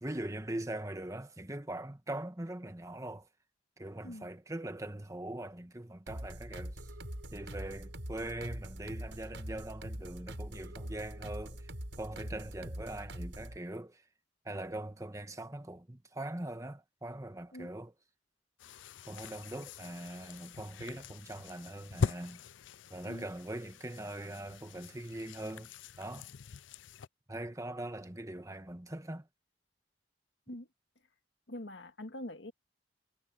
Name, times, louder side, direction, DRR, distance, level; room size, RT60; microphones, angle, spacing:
voice 1, 0.0-3.3 3.8-6.8 7.3-11.7 12.0-14.0 14.4-17.9 19.1-22.4 22.9-25.7 26.0-26.3 27.3-29.3, right 1 dB, 15° right, 1.3 m, -41 dB
sound 1, 6.1-13.6, right 1 dB, 80° right, 5.9 m, -43 dB
sound 2, 18.6-27.1, left 5 dB, 90° left, 0.5 m, -42 dB
voice 2, 31.5-32.5, left 1 dB, 70° left, 1.8 m, -44 dB
head